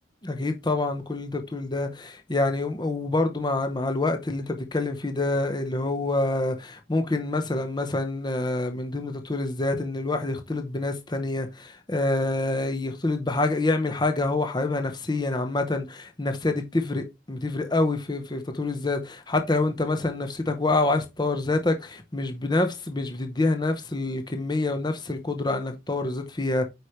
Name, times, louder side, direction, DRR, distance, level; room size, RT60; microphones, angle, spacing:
voice 1, 0.2-26.6, left 2 dB, 25° left, 0.9 m, -27 dB
8.9 x 5.0 x 3.1 m
head